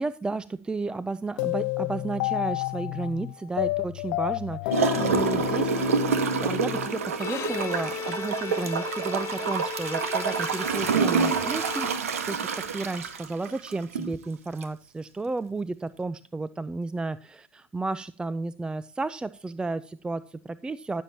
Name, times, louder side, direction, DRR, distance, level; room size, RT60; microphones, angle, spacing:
voice 1, 0.0-6.1 6.4-21.0, right 3 dB, 10° right, 16 dB, 0.4 m, -33 dB
sound 1, 1.4-7.5, left 18 dB, 60° left, 0.8 m, -30 dB
Gurgling / Toilet flush, 4.7-14.1 14.6-14.7, right 5 dB, 75° right, 1.3 m, -27 dB
Bowed string instrument, 7.1-12.4, left 9 dB, 40° left, 1.1 m, -37 dB
15.0 x 7.4 x 2.8 m, 0.37 s
figure-of-eight pair, 75°, 8 cm